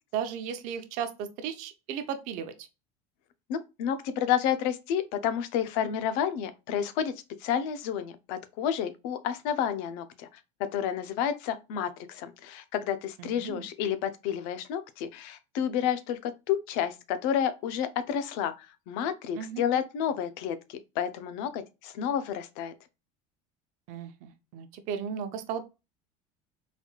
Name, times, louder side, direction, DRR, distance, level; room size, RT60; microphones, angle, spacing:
voice 1, 0.1-2.7 13.2-13.6 19.3-19.6 23.9-25.7, right 8 dB, 50° right, 0.7 m, -35 dB
voice 2, 3.5-7.1 7.4-10.3 10.7-22.7, left 9 dB, 60° left, 0.5 m, -30 dB
4.0 x 3.0 x 2.3 m
cardioid pair, 170°, 16 cm